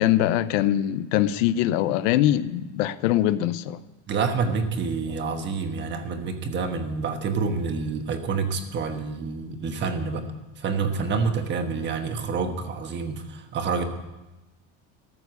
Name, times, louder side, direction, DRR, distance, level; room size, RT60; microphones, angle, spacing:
voice 1, 0.0-3.8, left 12 dB, 80° left, 0.7 m, -22 dB
voice 2, 4.1-10.3 10.6-13.8, right 4 dB, 30° right, 1.2 m, -28 dB
14.0 x 7.0 x 9.5 m
cardioid pair, 160°, 37 cm